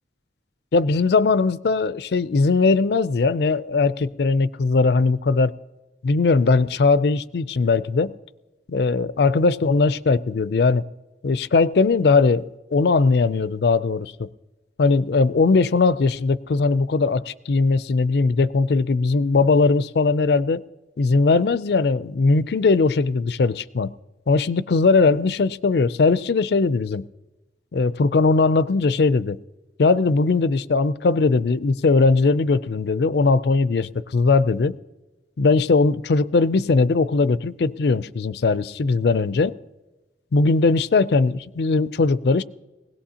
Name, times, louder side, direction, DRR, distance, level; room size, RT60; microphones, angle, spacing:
voice 1, 0.7-5.5 6.0-8.1 8.7-10.8 11.2-14.3 14.8-20.6 21.0-23.9 24.3-27.1 27.7-29.4 29.8-34.7 35.4-39.5 40.3-42.4, left 4 dB, 65° left, 17 dB, 0.4 m, -19 dB
20.0 x 17.5 x 2.8 m, 1.1 s
head